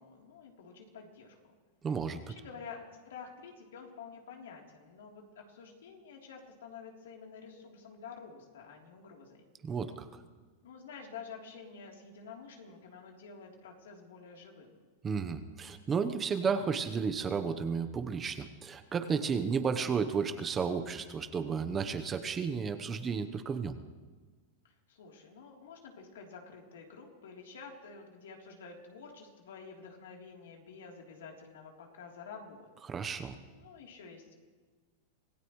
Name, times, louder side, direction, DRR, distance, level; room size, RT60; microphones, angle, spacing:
voice 1, 0.0-1.4 1.9-2.0 2.3-9.4 10.6-14.8 24.6-32.7 33.1-34.4, left 5 dB, 85° left, 0 dB, 3.4 m, -49 dB
voice 2, 1.8-2.2 9.6-10.1 15.0-23.8 32.8-33.3, right 6 dB, 20° right, 8 dB, 1.0 m, -33 dB
26.0 x 16.5 x 3.2 m, 1.4 s
supercardioid pair, 140°, 0 cm